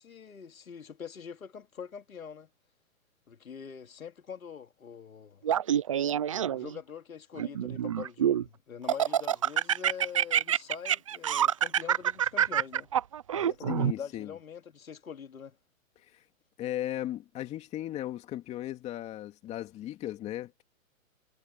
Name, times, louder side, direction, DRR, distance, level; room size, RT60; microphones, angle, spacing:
voice 1, 0.0-2.5 3.3-5.4 6.3-12.9 13.3-15.6, left 7 dB, 85° left, 3.3 m, -44 dB
Laughter, 5.4-6.8 7.4-8.4 8.9-13.9, right 10 dB, 25° right, 0.5 m, -26 dB
voice 2, 13.7-14.3 16.6-20.6, left 13 dB, 15° left, 2.5 m, -36 dB
hypercardioid pair, 160°, 40 cm